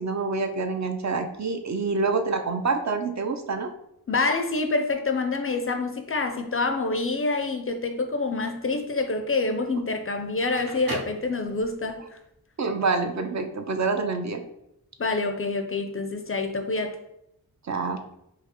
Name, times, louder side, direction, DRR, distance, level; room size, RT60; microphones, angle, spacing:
voice 1, 0.0-3.7 12.6-14.4 17.6-18.0, right 4 dB, 45° right, 0.4 m, -27 dB
voice 2, 4.1-12.2 15.0-17.0, left 3 dB, 35° left, 0.4 m, -27 dB
Crackle, 10.2-11.9, equal, 65° right, 0.9 m, -37 dB
4.6 x 2.0 x 2.9 m
wide cardioid pair, 65°, 39 cm